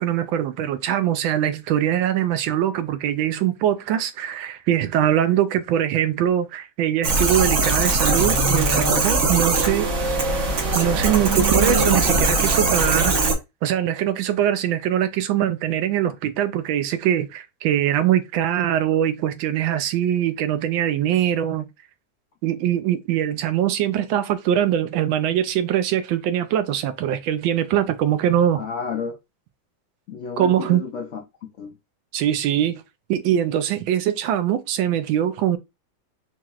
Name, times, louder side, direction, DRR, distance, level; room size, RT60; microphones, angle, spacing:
voice 1, 0.0-9.9 10.7-13.3 13.6-21.7 22.4-28.6 30.4-30.8 32.1-32.8 33.1-35.6, right 11 dB, 80° right, 1.4 m, -22 dB
sound 1, 7.0-13.3, right 3 dB, 55° right, 0.9 m, -20 dB
voice 2, 28.6-29.2 30.1-31.7, left 5 dB, 85° left, 0.6 m, -31 dB
4.5 x 2.9 x 2.3 m
omnidirectional pair, 2.1 m